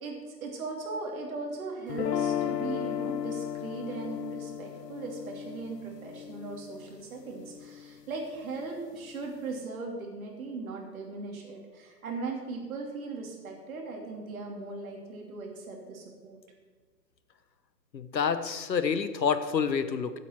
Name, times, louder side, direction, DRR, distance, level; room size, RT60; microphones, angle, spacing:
voice 1, 0.0-16.4, right 3 dB, 55° right, 1 dB, 3.0 m, -38 dB
sound 1, 1.9-8.0, left 9 dB, 70° left, 0.9 m, -35 dB
voice 2, 17.9-20.2, left 6 dB, 85° left, 11 dB, 1.2 m, -28 dB
15.0 x 8.2 x 4.5 m, 1.5 s
hypercardioid pair, 145°, 50 cm